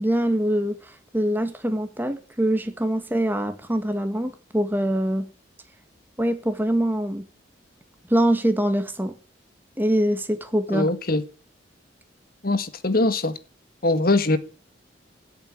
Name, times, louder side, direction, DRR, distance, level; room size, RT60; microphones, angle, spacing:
voice 1, 0.0-5.3 6.2-7.3 8.1-9.1 9.8-10.9, right 1 dB, 10° right, 1.8 m, -24 dB
voice 2, 10.7-11.2 12.4-13.4 13.8-14.4, left 2 dB, 50° left, 1.6 m, -22 dB
16.0 x 8.2 x 8.6 m
head